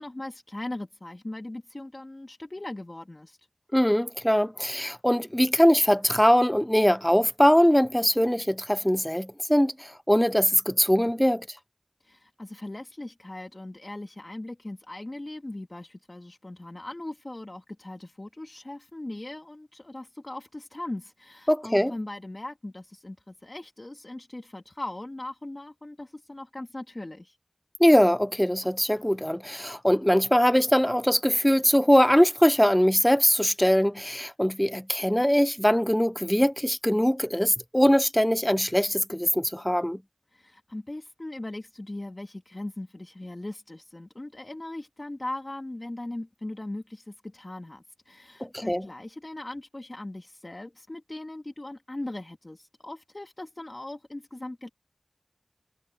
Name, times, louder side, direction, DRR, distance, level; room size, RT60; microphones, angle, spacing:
voice 1, 0.0-3.4 12.0-27.4 40.3-54.7, left 1 dB, 45° left, 2.3 m, -39 dB
voice 2, 3.7-11.5 21.5-21.9 27.8-40.0 48.4-48.8, equal, 10° left, 0.4 m, -22 dB
wide cardioid pair, 40°, 0 cm